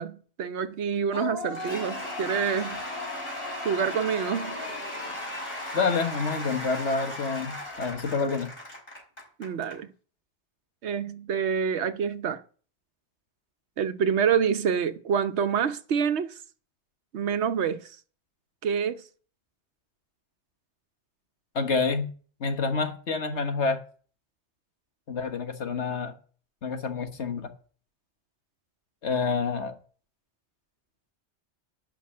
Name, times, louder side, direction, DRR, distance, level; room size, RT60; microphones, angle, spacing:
voice 1, 0.0-2.8 3.6-4.6 9.4-9.9 10.8-12.4 13.8-16.3 17.1-17.9 18.6-19.0, right 7 dB, 75° right, 1.1 m, -27 dB
Cheering / Applause / Crowd, 1.1-9.8, left 1 dB, 55° left, 4.8 m, -36 dB
voice 2, 5.7-8.5 21.6-22.1 22.4-23.8 25.1-26.1 26.6-27.5 29.0-29.7, left 4 dB, 85° left, 1.7 m, -28 dB
11.5 x 5.9 x 8.5 m
omnidirectional pair, 1.1 m